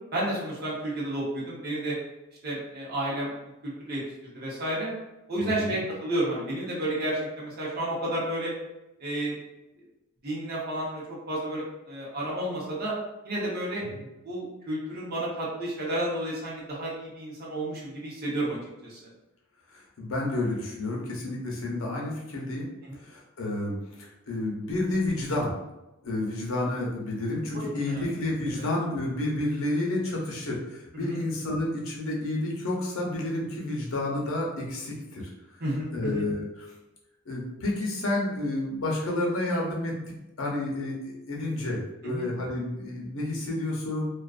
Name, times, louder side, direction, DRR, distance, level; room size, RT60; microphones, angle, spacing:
voice 1, 0.1-2.0 2.4-3.3 3.6-4.9 5.3-8.5 9.0-9.3 10.2-12.9 13.2-13.8 14.2-18.6 18.9-19.0 22.8-22.9 27.5-28.0 31.0-31.2 35.6-36.2 42.0-42.3, right 1 dB, 50° right, -5 dB, 0.8 m, -31 dB
voice 2, 5.4-5.8 19.7-22.6 23.0-25.5 26.0-35.2 35.9-36.7 37.3-44.1, left 2 dB, 85° left, -2 dB, 0.7 m, -30 dB
2.4 x 2.3 x 2.4 m, 0.96 s
head